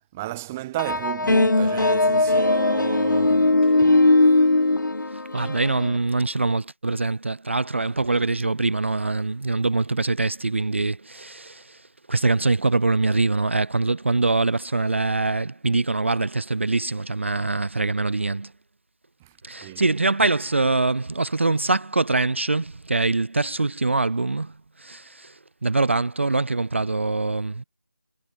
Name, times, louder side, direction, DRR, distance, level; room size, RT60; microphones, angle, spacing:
voice 1, 0.1-4.3 19.2-19.3 19.6-19.9, right 16 dB, 5° right, 1.1 m, -33 dB
CR - Outer space keys, 0.8-6.0, left 2 dB, 85° left, 0.8 m, -19 dB
voice 2, 5.3-11.8 12.1-18.5 19.4-24.5 24.8-27.6, right 3 dB, 40° right, 0.6 m, -23 dB
figure-of-eight pair, 170°, 10 cm